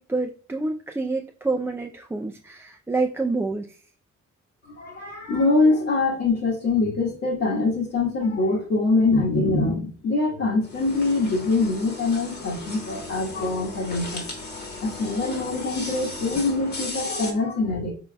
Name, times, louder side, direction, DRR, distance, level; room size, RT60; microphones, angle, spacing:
voice 1, 0.0-3.8, right 3 dB, 10° right, 1 dB, 0.3 m, -27 dB
voice 2, 4.7-14.2 14.8-17.9, left 3 dB, 55° left, -5 dB, 1.5 m, -24 dB
sound 1, 10.6-17.3, left 2 dB, 35° left, 1.3 m, -36 dB
4.5 x 3.9 x 2.2 m, 0.40 s
cardioid pair, 90°, 30 cm